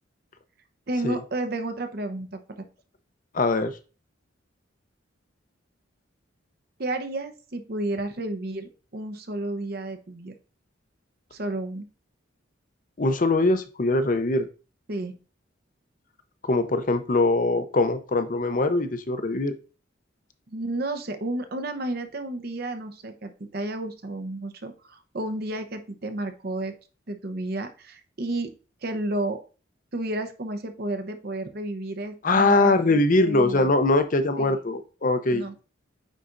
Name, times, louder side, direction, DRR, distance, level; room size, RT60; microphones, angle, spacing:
voice 1, 0.9-2.4 6.8-10.3 11.3-11.9 14.9-15.1 20.5-26.7 27.1-28.5 28.8-29.4 29.9-33.7 34.4-34.6 35.3-35.5, right 2 dB, 50° right, 8 dB, 0.7 m, -32 dB
voice 2, 3.3-3.7 13.0-14.5 16.4-19.5 32.2-35.4, left 2 dB, 40° left, 9 dB, 0.6 m, -22 dB
9.0 x 4.1 x 2.5 m, 0.35 s
head